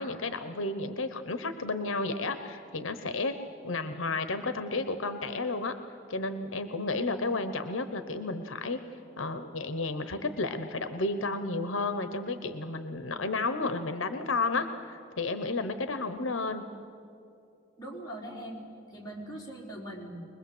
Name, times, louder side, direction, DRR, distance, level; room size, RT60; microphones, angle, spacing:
voice 1, 0.0-3.3 3.6-5.7 6.1-8.8 9.2-16.6, left 3 dB, 75° left, 9 dB, 1.0 m, -32 dB
voice 2, 17.8-18.6 18.9-20.2, right 1 dB, 20° left, -4 dB, 4.4 m, -41 dB
24.0 x 21.0 x 7.9 m, 2.6 s
head